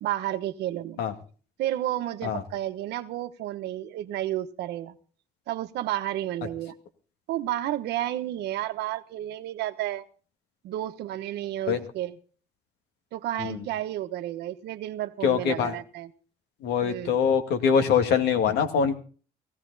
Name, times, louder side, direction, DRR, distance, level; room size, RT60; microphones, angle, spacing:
voice 1, 0.0-1.0 1.6-5.0 5.5-6.7 7.3-10.0 10.6-12.2 13.1-16.1 16.8-17.2, right 13 dB, 80° right, 8 dB, 1.2 m, -31 dB
voice 2, 15.2-15.7 16.6-18.9, left 7 dB, 80° left, 6 dB, 2.2 m, -23 dB
17.0 x 14.5 x 4.1 m, 0.41 s
cardioid pair, 110°, 17 cm